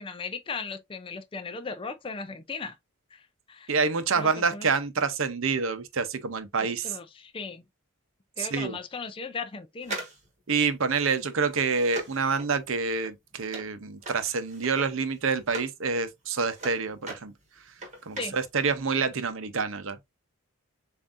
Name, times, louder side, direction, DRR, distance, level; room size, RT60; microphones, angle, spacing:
voice 1, 0.0-2.8 3.1-3.8 4.2-4.7 6.6-7.6 8.4-10.0 18.2-18.4, left 4 dB, 25° left, 0.4 m, -37 dB
voice 2, 3.7-7.0 8.4-8.8 10.5-17.3 18.1-20.0, right 5 dB, 60° right, 0.7 m, -27 dB
sound 1, 9.8-15.8 16.1-18.8 19.1-19.2, right 2 dB, 30° right, 1.3 m, -41 dB
7.0 x 2.6 x 2.5 m
head